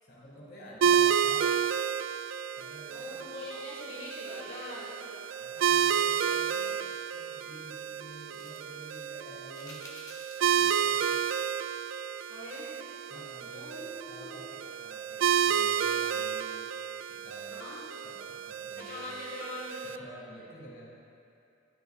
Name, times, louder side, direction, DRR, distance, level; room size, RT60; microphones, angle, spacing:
voice 1, 0.0-1.6 2.6-3.3 5.4-9.8 10.5-11.3 13.1-16.7 17.1-17.6 18.0-19.1 19.8-20.9, equal, 50° left, -5 dB, 2.2 m, -50 dB
sound 1, 0.8-20.0, right 8 dB, 75° right, 0.3 m, -31 dB
voice 2, 2.9-5.2 12.3-12.7 13.5-14.3 17.5-17.8 18.8-20.0, left 2 dB, 80° left, -6 dB, 1.7 m, -42 dB
sound 2, 5.7-6.4 8.3-8.6 9.5-10.5 10.9-11.0, left 2 dB, 20° left, 0.9 m, -52 dB
18.0 x 6.8 x 2.4 m, 2.6 s
head